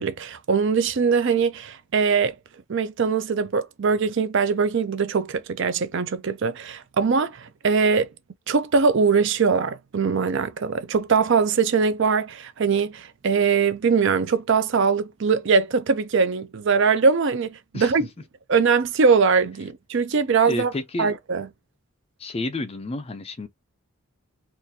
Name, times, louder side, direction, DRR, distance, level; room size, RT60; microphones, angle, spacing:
voice 1, 0.0-2.4 2.7-8.1 8.5-18.1 18.5-20.7 21.0-21.5, right 5 dB, 55° right, 0.5 m, -21 dB
voice 2, 20.5-21.1 22.2-23.5, left 2 dB, 25° left, 0.4 m, -30 dB
3.8 x 2.4 x 2.7 m
head